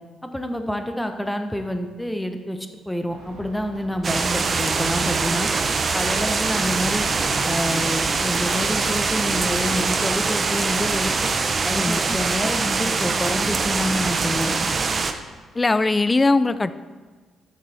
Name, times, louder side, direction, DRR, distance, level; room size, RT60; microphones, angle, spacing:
voice 1, 0.2-5.5 5.9-7.1 7.4-11.3 11.6-14.5, equal, 5° left, 6 dB, 0.9 m, -28 dB
sound 1, 3.1-14.8, right 2 dB, 80° right, 1.8 m, -41 dB
sound 2, 4.0-15.1, right 4 dB, 40° right, 0.8 m, -23 dB
voice 2, 11.7-12.2 15.5-16.7, left 3 dB, 20° left, 14 dB, 0.4 m, -20 dB
13.0 x 6.6 x 3.4 m, 1.4 s
cardioid pair, 90°, 0 cm